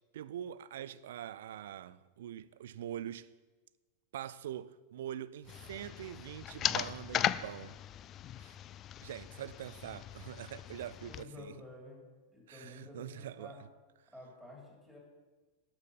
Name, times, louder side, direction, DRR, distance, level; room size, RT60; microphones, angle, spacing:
voice 1, 0.1-3.3 4.1-7.8 8.4-8.6 9.0-11.5 12.5-13.5, right 11 dB, 60° right, 0.4 m, -44 dB
sound 1, 5.5-11.2, left 11 dB, 30° left, 0.3 m, -38 dB
voice 2, 11.0-13.6 14.1-15.0, left 2 dB, 5° left, 3.2 m, -51 dB
9.7 x 7.1 x 5.5 m
figure-of-eight pair, 90°, 0 cm